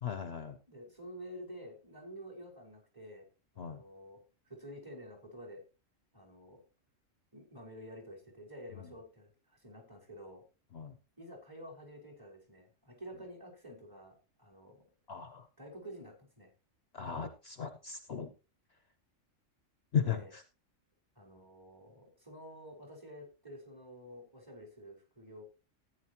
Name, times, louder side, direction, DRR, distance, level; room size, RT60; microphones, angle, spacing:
voice 1, 0.0-0.6 3.6-3.8 10.7-10.9 15.1-15.4 16.9-18.3 19.9-20.4, left 7 dB, 55° left, 9 dB, 1.2 m, -36 dB
voice 2, 0.7-3.3 3.5-4.2 4.5-5.6 6.1-6.6 7.3-10.4 11.2-14.8 15.6-16.5 20.1-20.3 21.1-25.4, equal, 15° right, 1 dB, 4.7 m, -50 dB
14.5 x 9.7 x 2.9 m, 0.30 s
omnidirectional pair, 1.3 m